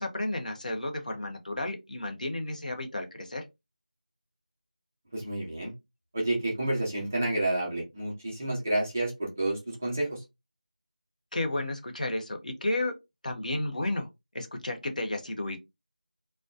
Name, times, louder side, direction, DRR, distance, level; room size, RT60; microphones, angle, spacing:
voice 1, 0.0-3.4 11.3-12.9 13.2-14.1 14.3-15.6, left 1 dB, 60° left, 0.7 m, -32 dB
voice 2, 5.1-5.7 6.1-10.2, right 1 dB, 15° right, 0.5 m, -30 dB
2.6 x 2.2 x 2.3 m
figure-of-eight pair, 175°, 5 cm